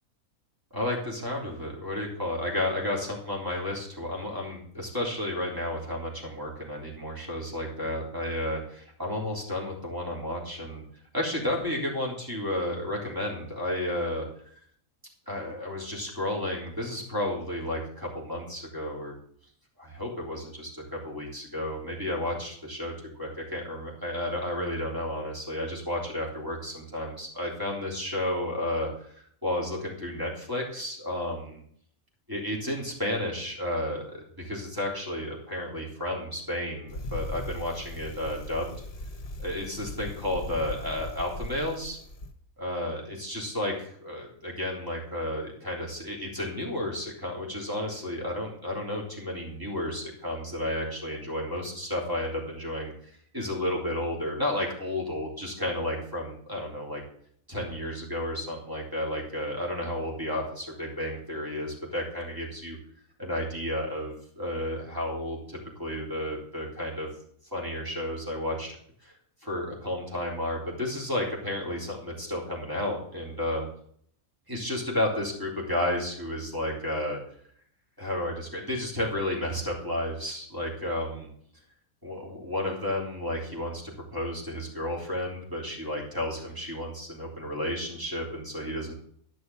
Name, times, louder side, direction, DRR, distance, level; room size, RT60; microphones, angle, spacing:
voice 1, 0.7-10.8 11.1-14.5 15.3-19.2 19.8-31.6 32.3-38.7 39.4-42.0 42.6-52.9 53.3-57.0 57.5-62.8 63.2-67.1 67.5-68.8 69.0-73.7 74.5-77.2 78.0-81.3 82.0-83.8 84.1-88.9, left 1 dB, 15° right, -3 dB, 3.4 m, -32 dB
Bicycle, 36.9-42.3, left 1 dB, 45° left, 1.4 m, -39 dB
11.5 x 6.4 x 7.0 m, 0.63 s
omnidirectional pair, 1.5 m